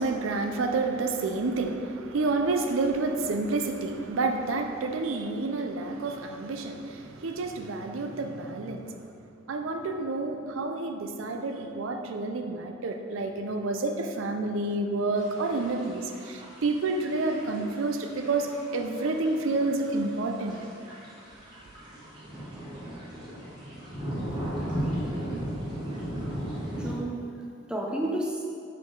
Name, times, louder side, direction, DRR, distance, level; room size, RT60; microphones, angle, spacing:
voice 1, 0.0-20.6, right 3 dB, 85° right, 5 dB, 0.5 m, -29 dB
sound 1, 15.2-26.9, equal, 20° right, 1.5 m, -36 dB
voice 2, 26.8-28.4, right 1 dB, 5° right, -1 dB, 0.4 m, -32 dB
5.2 x 4.7 x 4.6 m, 2.4 s
head